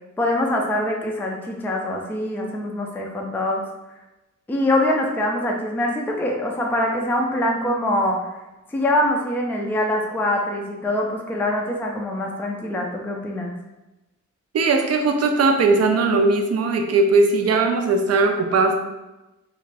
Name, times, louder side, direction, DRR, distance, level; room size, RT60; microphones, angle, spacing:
voice 1, 0.2-3.6 4.5-8.3 8.7-13.5, left 1 dB, 5° left, 0 dB, 0.3 m, -24 dB
voice 2, 14.5-18.8, right 3 dB, 60° right, 4 dB, 0.4 m, -19 dB
3.0 x 2.4 x 3.3 m, 1.0 s
wide cardioid pair, 140°, 29 cm